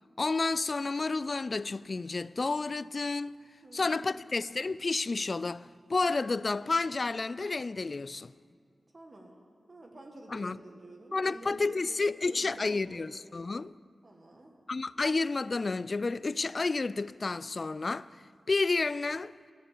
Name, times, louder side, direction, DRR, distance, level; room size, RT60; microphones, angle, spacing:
voice 1, 0.2-3.4 3.7-8.3 10.3-10.6 11.1-13.8 14.7-18.1 18.5-19.3, left 3 dB, 50° left, 0.3 m, -30 dB
voice 2, 3.6-4.2 8.9-9.4 9.7-11.8 12.2-13.1 14.0-14.5, right 1 dB, 45° right, 1.8 m, -49 dB
14.0 x 8.9 x 8.4 m
cardioid pair, 60°, 0 cm